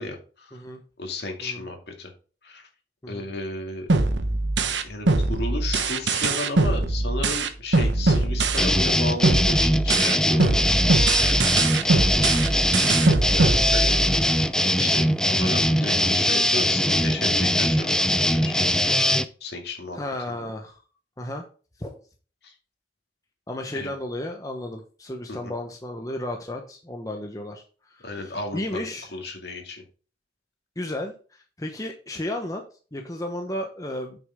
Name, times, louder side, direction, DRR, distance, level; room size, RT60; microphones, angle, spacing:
voice 1, 0.0-0.6 1.0-2.1 2.4-2.7 3.1-3.9 4.8-10.8 13.6-20.0 20.4-20.5 22.4-22.5 23.7-23.9 25.3-25.6 28.0-28.8 29.1-29.8, left 2 dB, 60° left, 3 dB, 2.4 m, -34 dB
sound 1, 3.9-8.9 9.2-14.3, right 2 dB, 80° right, 1.1 m, -22 dB
sound 2, 8.6-19.2, left 1 dB, 5° left, 0.5 m, -21 dB
voice 2, 13.3-14.0 19.9-20.8 21.2-21.4 21.8-22.0 23.5-29.1 30.8-32.6 32.9-34.2, left 1 dB, 20° left, 3 dB, 0.9 m, -34 dB
8.6 x 6.6 x 3.6 m, 0.38 s
head